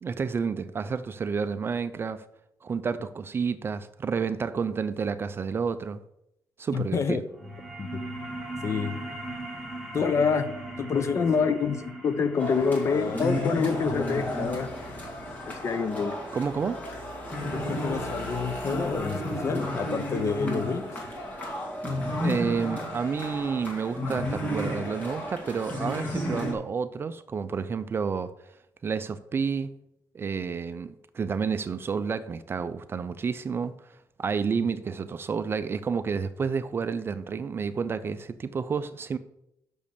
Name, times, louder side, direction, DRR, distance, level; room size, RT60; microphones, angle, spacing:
voice 1, 0.0-2.2 2.6-6.0 6.6-7.2 16.3-16.8 22.2-28.3 28.8-29.7 30.1-33.7 34.2-39.2, right 5 dB, 30° right, 0.4 m, -30 dB
voice 2, 6.7-7.2 7.8-8.0 8.6-9.0 9.9-14.7 15.5-16.1 17.5-20.9 34.6-34.7, left 5 dB, 40° left, 0.7 m, -27 dB
sound 1, 7.3-18.4, right 1 dB, ahead, 1.5 m, -41 dB
sound 2, 12.4-26.5, left 1 dB, 20° left, 2.2 m, -32 dB
6.3 x 5.3 x 6.7 m
cardioid pair, 145°, 8 cm